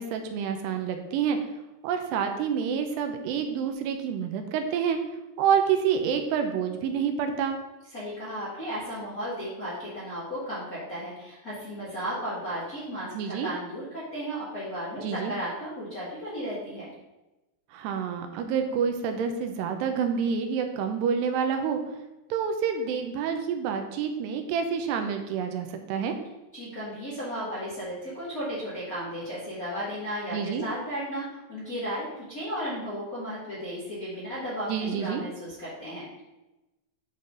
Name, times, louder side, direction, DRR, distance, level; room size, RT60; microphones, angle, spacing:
voice 1, 0.0-1.4 1.8-5.0 5.4-7.6 13.1-13.5 15.0-15.3 17.7-21.8 22.3-26.2 30.3-30.7 34.7-35.2, right 7 dB, 85° right, 6 dB, 2.8 m, -28 dB
voice 2, 7.9-16.9 26.5-36.0, equal, 35° left, -9 dB, 1.5 m, -34 dB
10.5 x 4.0 x 3.7 m, 1.0 s
omnidirectional pair, 4.8 m